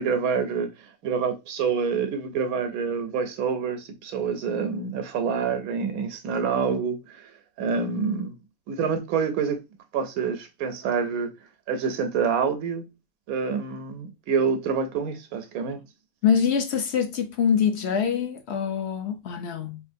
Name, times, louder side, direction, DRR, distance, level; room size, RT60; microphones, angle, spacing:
voice 1, 0.0-7.3 7.6-8.4 8.7-9.6 9.9-11.3 11.7-12.9 13.3-15.8, right 6 dB, 80° right, 1.1 m, -27 dB
voice 2, 16.2-19.8, left 7 dB, 60° left, 0.7 m, -24 dB
3.7 x 2.4 x 2.6 m
omnidirectional pair, 1.5 m